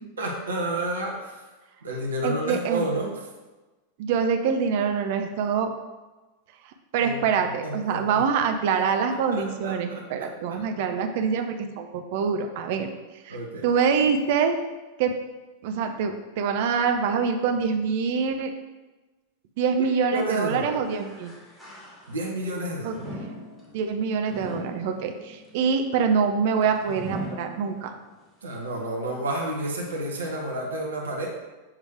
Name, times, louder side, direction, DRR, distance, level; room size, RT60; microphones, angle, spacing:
voice 1, 0.2-1.4 1.8-3.3 7.0-8.2 9.1-10.6 13.3-13.7 19.8-19.9 20.1-20.8 22.1-23.0 28.4-31.3, right 1 dB, 70° right, -1 dB, 1.2 m, -31 dB
voice 2, 2.2-2.9 4.0-5.7 6.9-12.9 13.2-13.4 13.6-14.6 15.0-15.1 15.6-18.5 19.6-21.3 22.8-23.2 23.7-27.9, right 6 dB, 50° right, 5 dB, 0.7 m, -25 dB
sound 1, 20.8-22.4 22.9-28.2 28.6-28.7 29.6-29.7, left 1 dB, 10° left, 2.0 m, -40 dB
7.3 x 3.2 x 5.0 m, 1.2 s
figure-of-eight pair, 90°, 0 cm